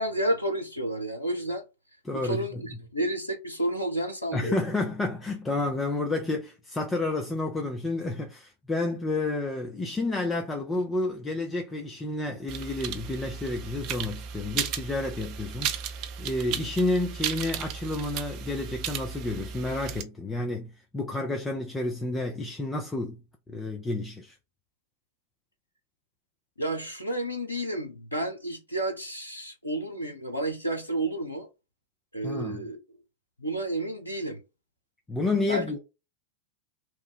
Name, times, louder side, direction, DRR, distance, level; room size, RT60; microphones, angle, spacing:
voice 1, 0.0-1.6 2.1-4.6 26.6-31.5 32.1-32.8 33.4-34.4 35.5-35.6, right 1 dB, 85° left, 0.6 m, -31 dB
voice 2, 2.0-2.6 4.3-23.2 23.5-24.4 32.2-32.7 35.1-35.8, left 2 dB, 15° left, 0.5 m, -30 dB
sound 1, 12.5-20.0, right 8 dB, 40° right, 0.4 m, -35 dB
3.0 x 2.2 x 4.0 m
figure-of-eight pair, 90°, 0 cm